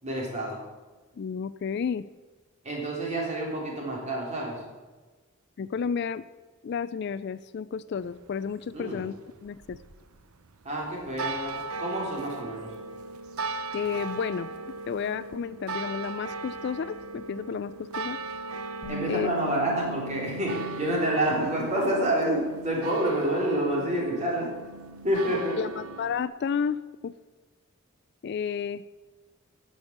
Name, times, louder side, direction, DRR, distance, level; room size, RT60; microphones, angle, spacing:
voice 1, 0.0-0.6 2.6-4.6 8.7-9.0 10.6-12.7 18.9-24.5 25.0-25.6, right 1 dB, 30° right, -2 dB, 3.4 m, -28 dB
voice 2, 1.2-2.0 5.6-6.2 6.6-9.8 13.7-14.5 14.9-18.2 19.1-19.3 25.6-27.1 28.2-28.8, left 6 dB, 50° left, 16 dB, 0.3 m, -31 dB
sound 1, 8.0-26.3, right 3 dB, 85° right, 0.8 m, -38 dB
Bass guitar, 18.8-25.1, equal, 25° left, 4.0 m, -42 dB
15.5 x 6.3 x 6.6 m, 1.3 s
head